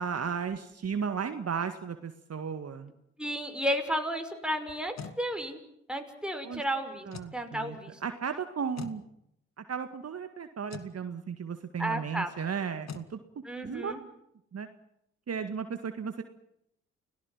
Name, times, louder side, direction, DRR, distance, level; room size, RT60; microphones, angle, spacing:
voice 1, 0.0-2.9 6.4-6.6 7.1-9.0 9.6-13.2 13.6-14.0 14.5-14.7 15.3-16.2, right 6 dB, 45° right, 8 dB, 2.0 m, -35 dB
voice 2, 3.2-5.6 5.9-7.1 7.3-8.0 11.8-12.3 13.4-14.0, equal, 5° right, 5 dB, 5.7 m, -32 dB
sound 1, 4.7-5.2 7.1-7.4 8.8-9.0 10.7-10.9 12.9-13.1, left 6 dB, 50° left, 2.2 m, -42 dB
30.0 x 18.0 x 7.4 m, 0.79 s
hypercardioid pair, 45°, 34 cm